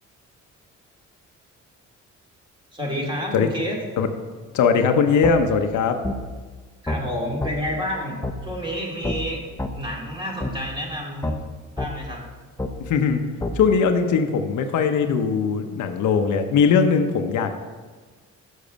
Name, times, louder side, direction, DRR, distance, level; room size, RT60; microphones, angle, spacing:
voice 1, 2.7-3.8 6.8-9.4 9.7-11.3 11.8-12.2, equal, 15° right, -2 dB, 2.2 m, -29 dB
voice 2, 4.5-6.0 12.9-13.2 13.5-17.6, left 6 dB, 75° left, 6 dB, 0.8 m, -20 dB
sound 1, 5.2-5.4 6.0-6.2 6.9-7.0 7.4-7.5 8.2-8.4 9.0-9.2 9.6-9.7 10.4-10.5 11.2-11.4 11.8-11.9 12.6-12.7 13.4-13.5, left 2 dB, 10° left, 0.7 m, -27 dB
6.9 x 6.3 x 5.2 m, 1.4 s
cardioid pair, 90°, 30 cm